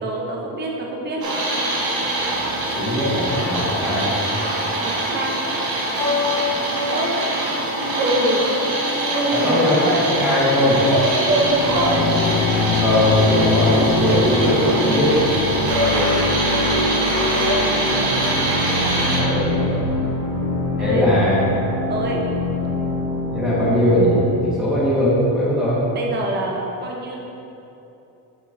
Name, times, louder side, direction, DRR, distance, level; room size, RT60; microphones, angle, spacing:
voice 1, 0.0-1.2 4.8-5.4 6.9-7.1 8.0-8.4 9.1-10.0 10.9-12.1 20.8-21.1 21.9-22.2 25.9-27.2, right 2 dB, 25° right, -1 dB, 0.7 m, -25 dB
sound 1, 1.2-19.2, right 2 dB, 55° right, 1.3 m, -24 dB
voice 2, 2.8-4.1 9.3-9.8 10.2-10.8 12.8-15.2 19.1-19.8 20.8-21.5 23.3-25.8, left 1 dB, ahead, -11 dB, 1.4 m, -20 dB
sound 2, 5.9-18.2, left 2 dB, 25° left, 1.4 m, -27 dB
sound 3, 11.3-24.3, left 2 dB, 75° left, 1.4 m, -24 dB
7.9 x 5.9 x 2.6 m, 2.9 s
cardioid pair, 170°, 43 cm